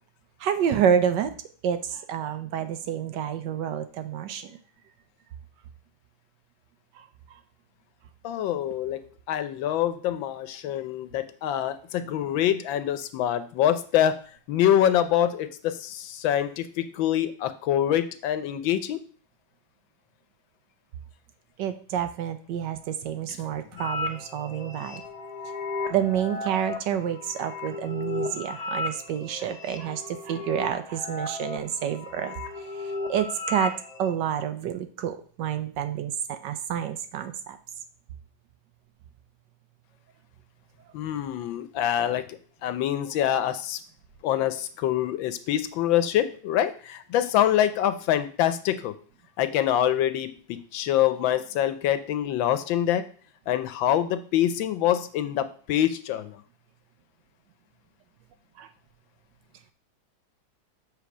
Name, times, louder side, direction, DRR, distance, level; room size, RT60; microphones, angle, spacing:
voice 1, 0.4-1.3 1.6-4.5 21.6-25.0 25.9-32.3 33.1-33.7 34.0-37.6 58.6-58.7, right 9 dB, 70° right, 10 dB, 1.2 m, -28 dB
voice 2, 8.2-14.2 14.5-19.0 40.9-43.8 44.2-48.9 49.4-53.1 53.5-56.4, left 11 dB, 80° left, 11 dB, 1.4 m, -25 dB
sound 1, 23.8-34.1, left 2 dB, 35° left, 0.6 m, -35 dB
7.7 x 3.4 x 6.1 m, 0.43 s
omnidirectional pair, 2.1 m